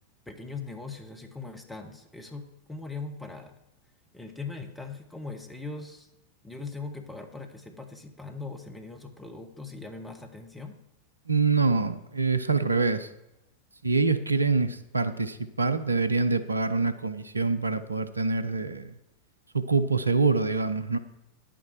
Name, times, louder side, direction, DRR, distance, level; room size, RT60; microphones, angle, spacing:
voice 1, 0.2-3.6 4.1-6.1 6.4-10.8, left 3 dB, 10° left, 5 dB, 1.5 m, -40 dB
voice 2, 11.3-13.1 13.8-18.9 19.5-21.0, right 4 dB, 80° right, 11 dB, 0.6 m, -25 dB
10.5 x 8.9 x 4.7 m, 0.87 s
figure-of-eight pair, 90°, 0 cm